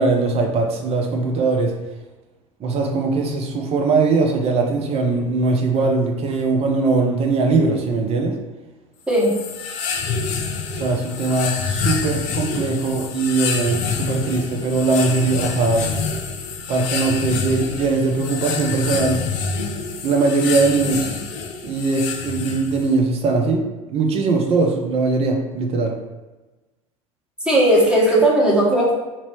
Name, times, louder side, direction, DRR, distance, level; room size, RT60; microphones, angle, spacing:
voice 1, 0.0-1.7 2.6-8.4 10.8-15.9 16.7-19.2 20.0-21.2 21.6-25.9, right 3 dB, 35° right, 2 dB, 0.7 m, -20 dB
sound 1, 9.1-23.0, left 5 dB, 45° left, 0.5 m, -27 dB
voice 2, 27.4-28.9, right 1 dB, 5° right, -5 dB, 1.2 m, -16 dB
3.0 x 2.8 x 4.4 m, 1.2 s
figure-of-eight pair, 75°, 18 cm